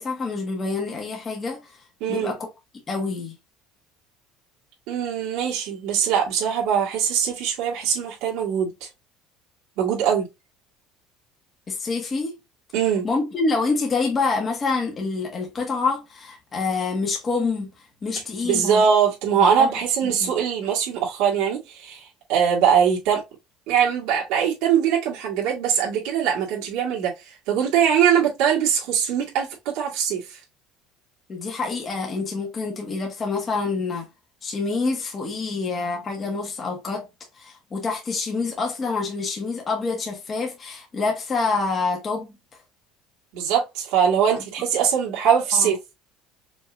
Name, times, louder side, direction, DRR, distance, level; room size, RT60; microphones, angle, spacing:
voice 1, 0.0-1.6 2.1-2.4 2.9-3.3 11.7-12.4 13.0-17.7 18.0-18.8 19.4-19.7 20.0-20.3 31.3-34.1 34.4-37.1 37.4-42.4 45.5-45.7, left 4 dB, 20° left, 1.3 m, -27 dB
voice 2, 2.0-2.3 4.9-8.9 9.8-10.3 12.7-13.1 18.4-23.2 23.7-30.4 43.3-45.8, right 8 dB, 70° right, 2.1 m, -22 dB
5.3 x 3.0 x 2.4 m
cardioid pair, 175°, 0 cm